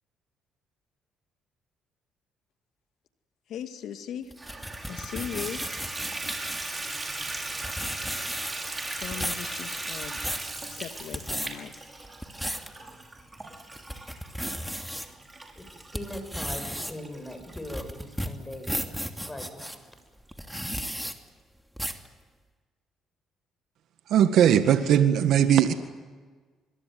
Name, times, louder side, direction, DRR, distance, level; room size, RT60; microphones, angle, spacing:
voice 1, 3.5-4.3 4.8-5.6 9.0-10.2 10.7-11.9, left 9 dB, 70° left, 8 dB, 2.1 m, -38 dB
sound 1, 4.3-6.7 7.4-7.5 7.6-8.7 9.0-9.5 9.9-10.5 11.0-11.5 12.0-12.7 13.2-13.3 13.8-15.1 15.6-19.8 20.3-21.1 21.8-22.1, equal, ahead, 2.7 m, -34 dB
Water tap faucet / Bathtub (filling or washing), 4.4-18.7 19.3-19.4 19.9-20.0 20.3-20.4, right 2 dB, 20° right, 6.0 m, -38 dB
voice 2, 15.6-19.8, left 1 dB, 15° left, 6 dB, 7.8 m, -40 dB
voice 3, 24.1-25.7, right 9 dB, 70° right, 9 dB, 1.8 m, -19 dB
26.0 x 22.0 x 9.5 m, 1.4 s
supercardioid pair, 70°, 0 cm